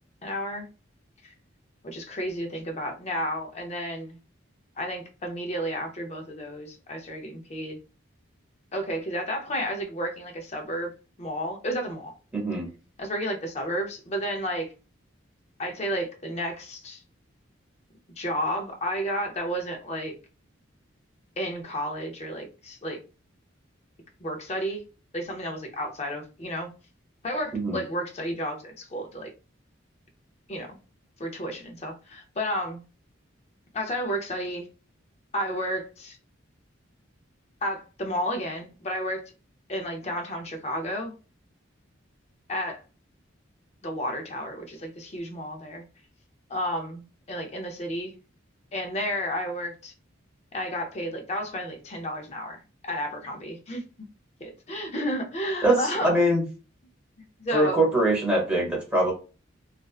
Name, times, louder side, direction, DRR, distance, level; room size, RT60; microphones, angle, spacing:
voice 1, 0.2-0.7 1.2-1.3 1.8-4.2 4.8-7.8 8.7-10.9 11.2-12.1 13.0-14.7 15.6-17.0 18.2-20.1 21.4-23.0 24.2-24.8 25.1-26.7 27.2-29.3 30.5-30.8 31.2-32.8 33.7-34.7 35.3-36.2 37.6-39.3 39.7-41.1 42.5-42.8 43.8-45.8 46.5-48.1 48.7-49.9 50.5-53.8 54.4-56.2 57.4-57.9, equal, 35° left, 0.5 m, -32 dB
voice 2, 12.3-12.7 27.5-27.8 55.6-56.4 57.5-59.1, right 1 dB, 5° right, 1.0 m, -23 dB
2.4 x 2.2 x 2.3 m
head